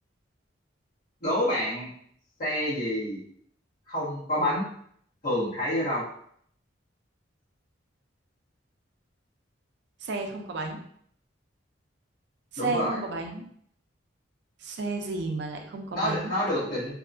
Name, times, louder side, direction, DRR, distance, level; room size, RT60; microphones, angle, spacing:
voice 1, 1.2-1.9 2.4-3.2 3.9-4.7 5.2-6.1 12.6-13.0 15.9-16.9, left 1 dB, 50° left, -8 dB, 1.1 m, -28 dB
voice 2, 10.0-10.8 12.6-13.4 14.6-16.3, right 3 dB, 65° right, 3 dB, 0.4 m, -32 dB
2.7 x 2.2 x 2.5 m, 0.65 s
head